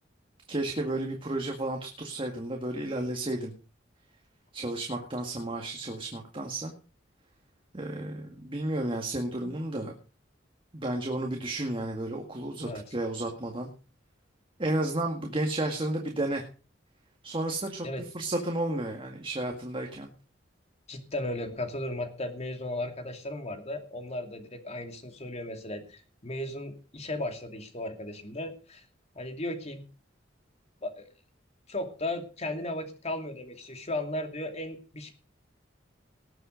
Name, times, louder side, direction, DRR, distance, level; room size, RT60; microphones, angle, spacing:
voice 1, 0.5-3.5 4.5-6.7 7.7-10.0 10.7-13.7 14.6-16.4 17.2-20.1, right 1 dB, 30° right, 2 dB, 2.0 m, -32 dB
voice 2, 12.6-12.9 17.8-18.0 20.9-28.8 29.1-29.8 30.8-31.1 31.7-35.1, left 1 dB, 35° left, 6 dB, 2.6 m, -35 dB
19.0 x 8.0 x 5.2 m, 0.36 s
head